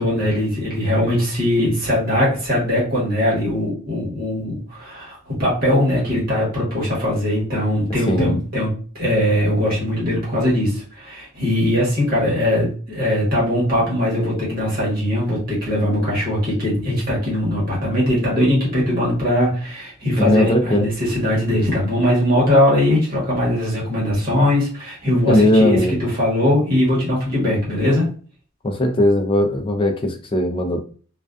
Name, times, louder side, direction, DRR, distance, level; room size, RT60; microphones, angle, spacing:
voice 1, 0.0-28.1, left 1 dB, 45° right, -5 dB, 1.1 m, -20 dB
voice 2, 8.1-8.4 20.2-20.9 25.3-25.9 28.6-30.8, left 1 dB, 25° left, 5 dB, 0.4 m, -18 dB
2.3 x 2.2 x 2.4 m, 0.40 s
head